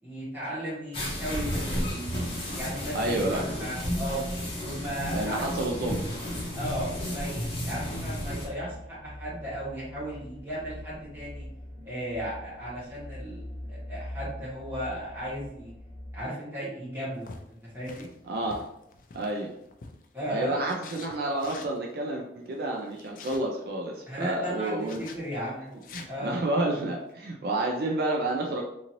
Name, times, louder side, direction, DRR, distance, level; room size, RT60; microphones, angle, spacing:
voice 1, 0.0-4.3 4.6-5.4 6.6-11.5 11.8-15.7 16.1-18.1 20.1-20.6 24.1-26.5, equal, 10° right, -8 dB, 1.2 m, -36 dB
sound 1, 0.9-8.5, equal, 30° left, 0.8 m, -32 dB
voice 2, 2.9-3.5 5.1-6.0 18.3-18.6 19.1-19.5 20.3-25.0 25.9-28.6, right 1 dB, 55° right, 0 dB, 0.4 m, -30 dB
sound 2, 6.7-16.2, left 1 dB, 10° left, 1.2 m, -43 dB
sound 3, 17.2-20.2 20.7-21.8 22.8-23.4 24.8-25.2 25.7-26.1, left 4 dB, 50° left, 0.3 m, -46 dB
2.7 x 2.6 x 2.9 m, 0.80 s
head